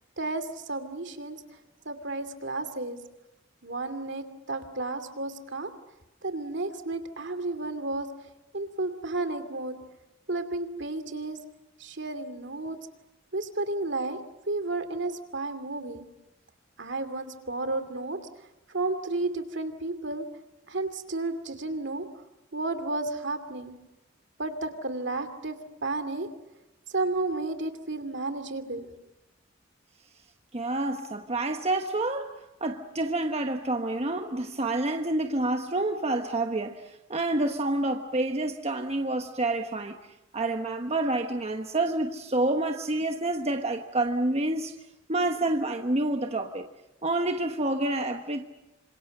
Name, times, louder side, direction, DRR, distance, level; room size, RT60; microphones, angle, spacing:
voice 1, 0.7-1.4 1.9-3.0 3.6-5.7 6.2-8.1 8.5-9.7 10.3-11.4 11.8-12.8 13.3-14.2 14.5-16.0 16.8-18.2 18.7-20.3 20.7-22.0 22.5-23.7 24.4-25.6 25.8-26.3 26.9-28.9, right 2 dB, 65° right, 2.6 m, -32 dB
voice 2, 30.5-32.3 32.6-36.8 37.1-40.0 40.3-44.7 45.1-46.7 47.0-48.5, right 2 dB, 35° right, 1.2 m, -28 dB
28.0 x 26.5 x 6.7 m
head